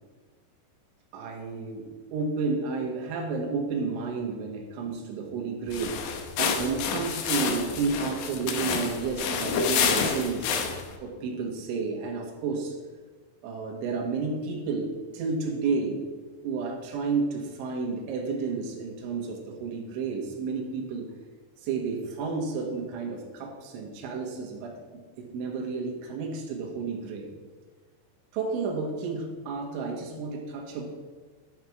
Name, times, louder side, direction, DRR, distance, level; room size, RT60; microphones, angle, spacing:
voice 1, 1.1-10.6 11.0-12.8 13.4-16.1 16.4-21.1 21.6-27.3 28.3-30.9, right 4 dB, 75° right, 0 dB, 3.8 m, -31 dB
sound 1, 5.7-11.0, left 6 dB, 80° left, 2.1 m, -29 dB
13.0 x 5.7 x 4.8 m, 1.4 s
omnidirectional pair, 5.6 m